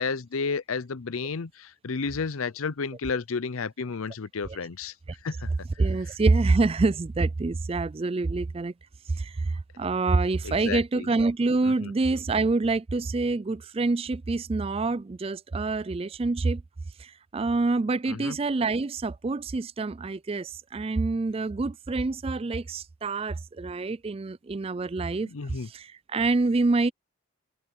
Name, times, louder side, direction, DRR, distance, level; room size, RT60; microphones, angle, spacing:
voice 1, 0.0-4.9 5.2-5.5 10.4-11.1 11.6-11.9 18.1-18.4 25.2-25.7, left 5 dB, 75° left, 0.6 m, -32 dB
voice 2, 5.8-8.7 9.1-16.6 17.0-25.3 25.6-26.9, right 3 dB, 25° right, 0.3 m, -26 dB
head